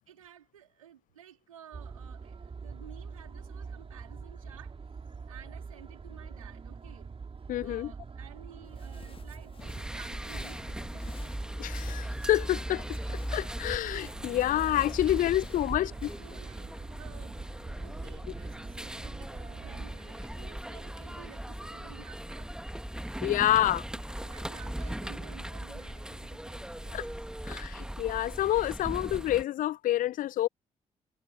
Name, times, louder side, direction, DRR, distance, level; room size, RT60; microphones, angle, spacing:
voice 1, 0.1-4.8 5.3-7.1 7.6-11.3 15.0-15.3 15.7-17.4 17.8-22.5 23.4-23.7 24.2-27.2, right 10 dB, 80° right, 3.2 m, -53 dB
sound 1, 1.7-20.0, right 5 dB, 35° right, 3.2 m, -45 dB
voice 2, 7.5-7.9 11.6-12.9 13.1-15.9 23.2-23.8 26.9-27.0 27.4-30.5, left 13 dB, 50° left, 0.7 m, -28 dB
sound 2, 8.6-16.4, left 5 dB, 30° left, 1.5 m, -54 dB
sound 3, 9.6-29.4, right 1 dB, 5° right, 1.8 m, -39 dB
figure-of-eight pair, 40°, 17 cm